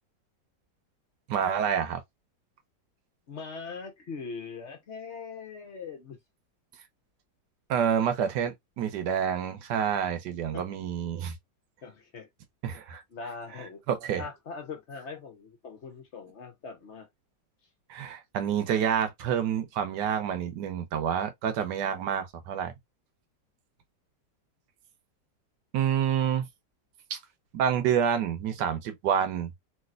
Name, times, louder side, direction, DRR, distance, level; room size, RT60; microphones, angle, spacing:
voice 1, 1.3-2.0 7.7-11.3 12.6-13.0 13.9-14.2 17.9-22.7 25.7-26.5 27.1-27.2 27.5-29.5, right 8 dB, 80° right, 1.3 m, -28 dB
voice 2, 3.3-6.2 10.5-10.6 11.8-12.3 13.1-13.8 14.2-17.1, left 5 dB, 50° left, 0.9 m, -41 dB
3.2 x 2.9 x 2.4 m
omnidirectional pair, 1.9 m